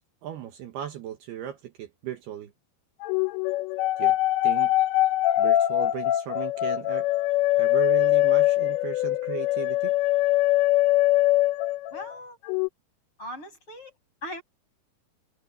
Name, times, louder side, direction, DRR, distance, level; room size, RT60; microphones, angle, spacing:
voice 1, 0.2-2.5 4.0-4.2 4.4-4.7 5.4-7.1 7.6-9.9, right 11 dB, 70° right, 3.0 m, -36 dB
sound 1, 3.0-12.1 12.4-12.7, left 15 dB, 80° left, 3.0 m, -23 dB
voice 2, 11.9-12.4 13.2-14.4, left 1 dB, 25° left, 7.4 m, -39 dB
omnidirectional pair, 5.3 m